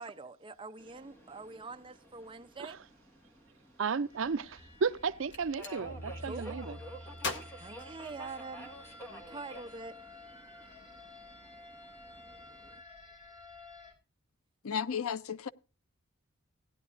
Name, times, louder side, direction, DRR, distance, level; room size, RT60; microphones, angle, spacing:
voice 1, 0.0-2.8 6.2-6.6 7.6-10.1, right 3 dB, 25° right, 0.6 m, -45 dB
Subway metro underground, 0.8-12.8, right 1 dB, 10° left, 1.7 m, -52 dB
voice 2, 3.8-4.5 4.8-6.8, right 5 dB, 65° right, 0.5 m, -33 dB
sound 1, 4.1-13.9, left 1 dB, 35° left, 3.8 m, -50 dB
Gunshot gunfire, 5.2-5.8 7.2-8.7, left 4 dB, 55° left, 1.7 m, -40 dB
voice 3, 14.6-15.5, left 7 dB, 85° left, 0.6 m, -33 dB
17.0 x 10.5 x 2.5 m
head